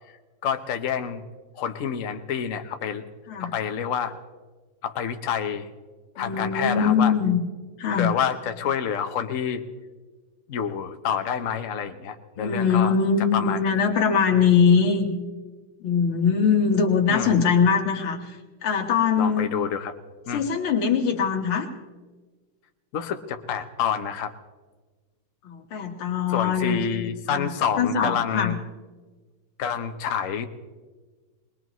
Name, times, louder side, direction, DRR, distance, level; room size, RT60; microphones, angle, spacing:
voice 1, 0.4-1.2 1.6-3.0 3.4-4.1 4.8-5.7 6.1-7.1 7.9-9.6 10.5-12.9 13.3-13.6 17.1-17.4 19.2-19.9 20.3-20.4 22.9-24.3 26.3-28.6 29.6-30.5, left 8 dB, 50° left, 7 dB, 1.1 m, -28 dB
voice 2, 6.2-7.4 7.8-8.1 12.4-15.1 15.8-19.5 20.3-21.7 25.4-27.5 27.8-28.5, left 6 dB, 75° left, 3 dB, 2.4 m, -22 dB
22.0 x 21.0 x 3.1 m, 1.3 s
omnidirectional pair, 2.3 m